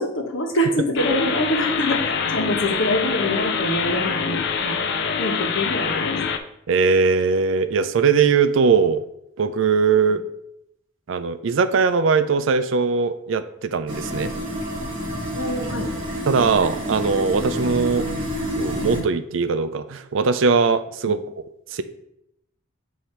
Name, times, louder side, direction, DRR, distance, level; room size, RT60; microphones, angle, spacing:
voice 1, 0.0-4.7 5.2-6.1 15.3-15.9, equal, 70° left, 2 dB, 1.0 m, -25 dB
sound 1, 1.0-6.4, left 6 dB, 55° left, 0.4 m, -25 dB
voice 2, 6.7-9.0 9.4-10.2 11.1-14.3 16.3-18.1 18.5-21.2 21.7-21.8, right 5 dB, 65° right, 11 dB, 0.4 m, -20 dB
sound 2, 13.9-19.0, equal, 25° right, 1.2 m, -28 dB
8.1 x 2.7 x 4.4 m, 0.78 s
head